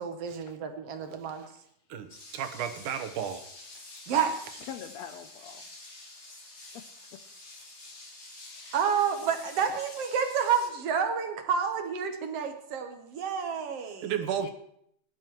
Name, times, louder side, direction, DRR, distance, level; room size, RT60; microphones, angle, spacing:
voice 1, 0.0-1.5 4.1-4.7 8.7-14.1, right 7 dB, 65° right, 6 dB, 1.8 m, -29 dB
voice 2, 1.9-3.4 14.0-14.5, right 8 dB, 85° right, 7 dB, 2.5 m, -33 dB
sound 1, 2.1-10.7, left 2 dB, 45° left, 3.4 m, -48 dB
voice 3, 4.7-5.7 8.6-8.8 9.2-9.3 9.6-9.9 14.4-14.5, left 8 dB, 80° left, 8 dB, 1.6 m, -43 dB
20.5 x 11.0 x 3.0 m, 0.70 s
omnidirectional pair, 3.5 m